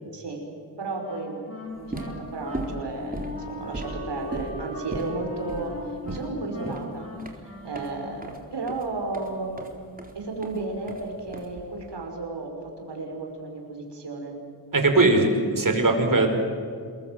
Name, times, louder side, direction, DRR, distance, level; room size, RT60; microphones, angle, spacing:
voice 1, 0.1-0.5 0.8-1.5 1.8-7.1 7.6-9.6 10.2-12.5 12.8-14.4, right 3 dB, 65° right, 2 dB, 5.6 m, -33 dB
Wind instrument woodwind instrument, 1.0-8.3, left 1 dB, 30° left, 7.5 m, -39 dB
sound 1, 1.7-11.9, right 1 dB, 20° right, 4.2 m, -38 dB
voice 2, 14.7-16.3, right 2 dB, 45° right, 5 dB, 5.2 m, -20 dB
27.0 x 22.5 x 7.8 m, 2.2 s
cardioid pair, 50°, 44 cm